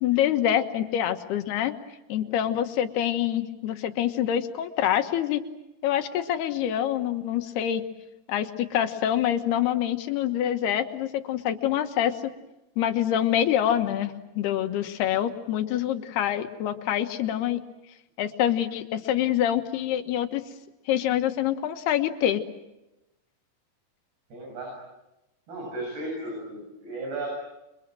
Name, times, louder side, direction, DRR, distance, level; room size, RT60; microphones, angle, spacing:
voice 1, 0.0-1.7 2.1-5.4 5.8-7.8 8.3-12.3 12.8-17.6 18.2-20.4 20.9-22.4, left 11 dB, 80° left, 7 dB, 3.4 m, -26 dB
voice 2, 2.2-2.5 24.3-24.8 25.5-27.3, right 2 dB, 80° right, -1 dB, 9.3 m, -35 dB
29.5 x 24.0 x 7.7 m, 0.95 s
omnidirectional pair, 4.6 m